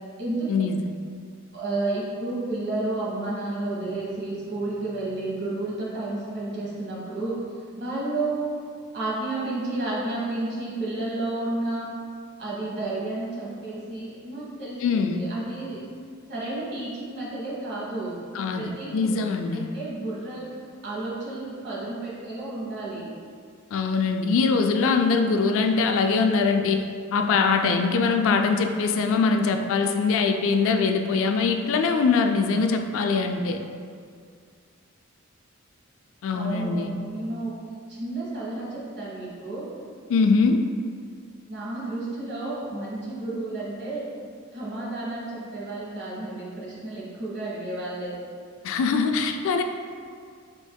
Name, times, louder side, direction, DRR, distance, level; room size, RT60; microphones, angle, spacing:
voice 1, 0.5-0.8 14.8-15.2 18.3-19.7 23.7-26.8 27.1-33.6 36.2-36.9 40.1-40.6 48.6-49.6, left 4 dB, 65° left, 5 dB, 0.3 m, -22 dB
voice 2, 1.5-7.3 7.8-8.5 8.9-11.8 12.4-15.8 16.3-18.2 18.5-19.0 19.5-20.4 20.8-23.1 36.3-37.5 37.9-39.6 41.5-44.0 44.5-48.1, right 2 dB, 55° right, -6 dB, 1.2 m, -31 dB
5.1 x 3.5 x 2.2 m, 2.2 s
head